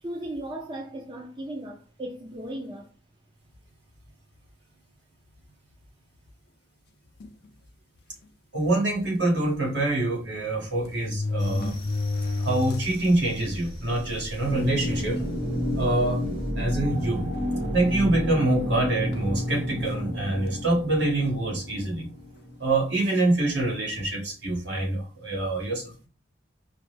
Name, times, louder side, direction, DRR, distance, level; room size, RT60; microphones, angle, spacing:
voice 1, 0.0-2.9, right 1 dB, 25° right, 0.5 m, -36 dB
sound 1, 7.2-7.5 8.2-8.3 8.6-8.7 10.0-10.1 10.8-13.1 13.5-13.6 14.4-14.5 14.9-15.3 15.9-16.1 17.3-18.2 19.1-19.4, left 3 dB, 60° left, 0.4 m, -31 dB
voice 2, 8.5-11.7 12.4-15.2 15.7-16.3 16.6-17.3 17.7-22.1 22.6-26.1, right 2 dB, 70° right, 1.5 m, -25 dB
sound 2, 11.4-18.9, equal, 85° right, 1.3 m, -43 dB
sound 3, 14.5-23.0, equal, 50° right, 1.5 m, -30 dB
4.8 x 2.1 x 3.2 m
head